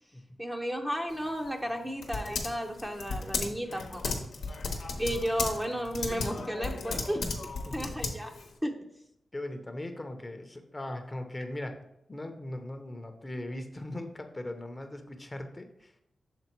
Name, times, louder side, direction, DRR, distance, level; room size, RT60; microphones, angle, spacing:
voice 1, 0.4-4.1 5.0-7.3 7.7-8.3 8.6-8.8, equal, 10° right, 3 dB, 0.7 m, -33 dB
Typing, 1.1-8.5, left 3 dB, 85° left, 0.9 m, -36 dB
voice 2, 4.9-5.2 7.7-7.9 9.3-11.8 12.1-15.9, left 1 dB, 25° left, 6 dB, 0.8 m, -39 dB
6.8 x 3.6 x 4.5 m, 0.80 s
cardioid pair, 70°, 0 cm